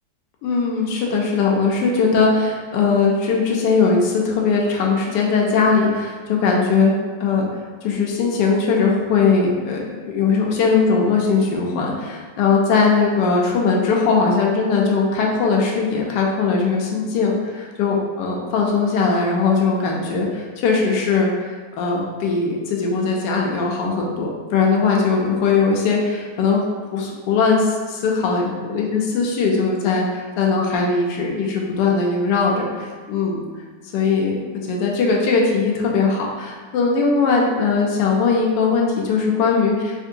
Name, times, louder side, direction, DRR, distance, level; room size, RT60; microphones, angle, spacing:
voice 1, 0.4-6.9 7.2-26.6 26.9-33.4 33.9-34.4 34.6-39.7, left 4 dB, 75° left, -1 dB, 1.2 m, -20 dB
3.7 x 2.9 x 2.5 m, 1.5 s
omnidirectional pair, 2.0 m